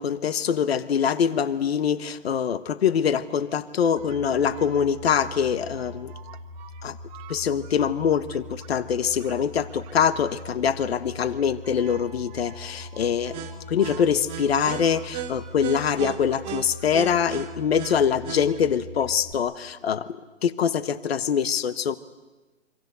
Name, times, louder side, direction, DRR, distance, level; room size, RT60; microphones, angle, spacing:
voice 1, 0.0-6.1 6.8-7.0 7.3-22.0, left 7 dB, 55° left, 14 dB, 1.3 m, -24 dB
sound 1, 4.0-19.3, right 3 dB, 15° right, 1.7 m, -38 dB
27.5 x 26.0 x 8.2 m, 1.2 s
hypercardioid pair, 160°, 37 cm